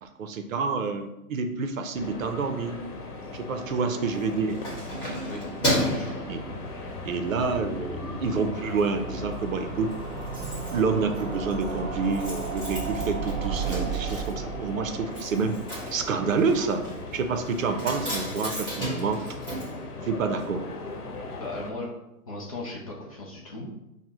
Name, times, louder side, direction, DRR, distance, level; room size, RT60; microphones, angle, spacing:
voice 1, 0.0-2.8 3.3-4.6 5.1-5.2 6.2-6.4 7.0-9.9 10.7-15.5 15.9-16.8 17.1-19.2 20.0-20.6, right 4 dB, 60° right, 7 dB, 0.6 m, -28 dB
sound 1, 1.9-21.7, left 2 dB, 85° left, 1.0 m, -39 dB
Keys jangling, 4.0-7.1 7.6-7.8 8.2-8.9 9.1-9.2 9.5-9.6 9.8-20.6 20.8-20.9, equal, 10° left, 1.3 m, -34 dB
sound 2, 4.5-17.0 17.2-17.3 17.5-17.6 17.8-17.9, right 5 dB, 20° right, 1.3 m, -37 dB
voice 2, 5.7-6.2 21.4-21.9 22.3-23.8, left 2 dB, 25° left, -3 dB, 0.4 m, -37 dB
5.4 x 2.1 x 2.9 m, 0.89 s
hypercardioid pair, 140°, 45 cm